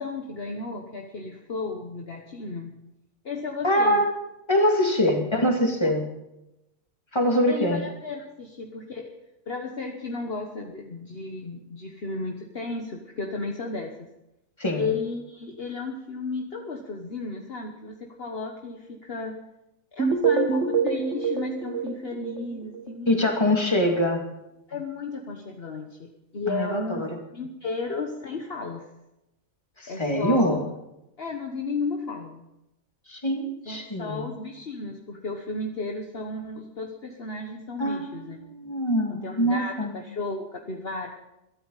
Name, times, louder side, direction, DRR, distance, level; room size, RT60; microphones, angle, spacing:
voice 1, 0.0-2.8 3.2-4.0 5.0-5.4 5.8-5.9 7.5-9.1 9.5-14.1 14.8-19.4 19.9-23.3 24.7-27.0 27.3-28.8 29.9-30.6 31.2-32.4 33.7-38.4 39.1-41.1, left 3 dB, 45° left, 2 dB, 1.5 m, -34 dB
voice 2, 3.6-4.1 4.5-6.0 7.1-7.8 14.6-14.9 23.1-24.2 26.5-27.1 29.8-30.6 33.1-34.3 37.8-39.9, equal, 20° left, 1 dB, 2.6 m, -24 dB
sound 1, 20.0-22.9, right 6 dB, 60° right, 1.5 m, -26 dB
22.0 x 13.5 x 4.1 m, 0.90 s
omnidirectional pair, 1.4 m